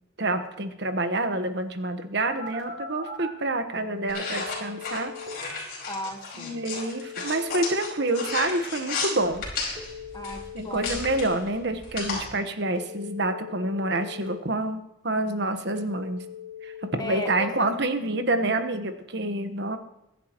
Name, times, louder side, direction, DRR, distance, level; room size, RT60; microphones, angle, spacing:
voice 1, 0.2-5.1 6.3-9.4 10.5-16.2 16.6-19.8, right 2 dB, 60° right, 7 dB, 1.3 m, -28 dB
Telephone, 2.3-3.3 3.8-5.3 6.8-8.3 9.7-11.3 12.7-14.3 15.8-17.3, left 5 dB, 40° right, 6.2 m, -40 dB
sound 1, 4.1-12.3, left 4 dB, 50° left, 5.1 m, -33 dB
voice 2, 5.9-6.6 10.1-11.0 17.0-17.7, left 1 dB, 20° left, 5 dB, 1.4 m, -36 dB
23.5 x 11.0 x 3.1 m, 0.88 s
head